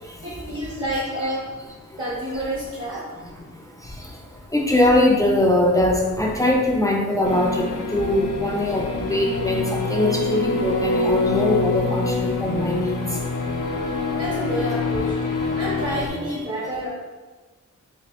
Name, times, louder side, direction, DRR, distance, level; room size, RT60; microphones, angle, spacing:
voice 1, 0.2-1.5 2.0-3.1 14.1-15.1 15.6-16.9, right 1 dB, 45° right, -8 dB, 1.2 m, -28 dB
voice 2, 4.5-7.7 7.9-13.0, left 1 dB, 10° left, -2 dB, 0.4 m, -21 dB
sound 1, 7.2-16.1, left 3 dB, 85° left, 0.6 m, -25 dB
5.0 x 2.7 x 2.5 m, 1.3 s
wide cardioid pair, 110°, 30 cm